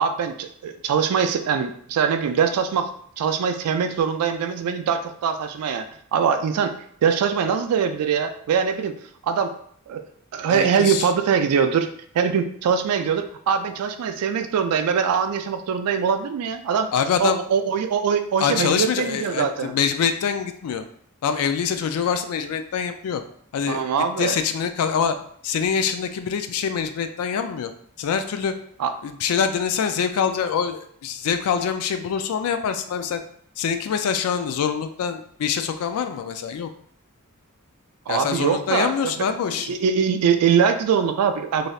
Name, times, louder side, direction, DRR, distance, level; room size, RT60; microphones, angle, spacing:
voice 1, 0.0-2.9 3.2-6.8 7.0-9.0 9.2-9.5 9.9-10.0 10.3-11.9 12.1-16.9 17.2-19.7 23.7-24.4 28.8-28.9 38.1-39.1 39.7-41.7, right 6 dB, 90° right, 8 dB, 0.3 m, -22 dB
voice 2, 10.5-11.1 16.9-17.4 18.4-20.8 21.2-23.2 23.5-23.8 24.2-25.2 25.4-27.7 28.0-28.5 29.0-33.2 33.6-36.7 38.1-39.7, left 7 dB, 70° left, 8 dB, 0.3 m, -25 dB
3.2 x 2.6 x 2.3 m, 0.62 s
head